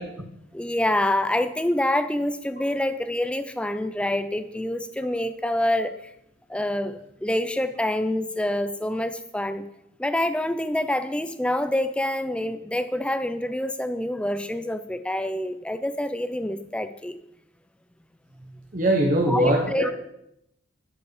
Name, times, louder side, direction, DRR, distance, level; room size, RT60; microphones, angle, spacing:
voice 1, 0.5-6.1 6.5-9.7 10.0-17.2 19.3-19.9, left 1 dB, 5° left, 10 dB, 0.4 m, -26 dB
voice 2, 18.7-19.9, right 1 dB, 40° right, 1 dB, 1.0 m, -21 dB
11.0 x 5.2 x 4.9 m, 0.81 s
head